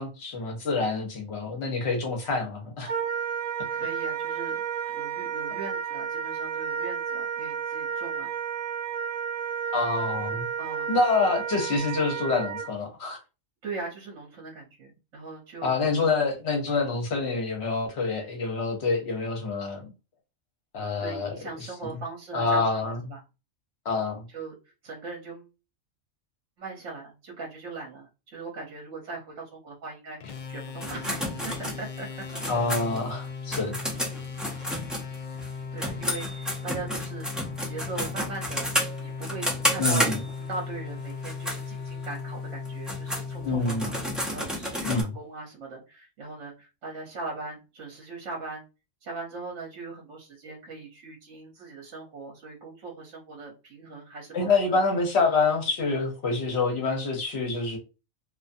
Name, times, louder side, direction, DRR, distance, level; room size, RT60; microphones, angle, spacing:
voice 1, 0.0-2.9 9.7-10.5 10.9-13.2 15.6-19.9 20.7-21.3 22.3-23.0 23.8-24.2 32.5-33.8 39.8-40.2 43.4-43.9 44.8-45.1 54.3-57.8, left 3 dB, 60° left, 1.1 m, -26 dB
Wind instrument woodwind instrument, 2.9-12.7, right 7 dB, 45° right, 1.0 m, -32 dB
voice 2, 3.7-4.6 4.9-8.6 10.6-10.9 13.6-15.9 21.0-23.2 24.3-24.5 24.8-25.5 26.6-32.1 32.3-32.4 35.7-37.3 37.6-38.7 39.0-40.1 40.5-44.0 44.3-48.6 49.0-54.8, right 3 dB, 70° right, 1.1 m, -40 dB
sound 1, 30.2-44.8, left 5 dB, 85° left, 0.4 m, -37 dB
sound 2, 30.8-35.5 35.8-40.5 41.1-41.6 42.0-42.1 42.6-45.0, equal, ahead, 0.3 m, -31 dB
2.5 x 2.4 x 2.6 m
omnidirectional pair, 1.3 m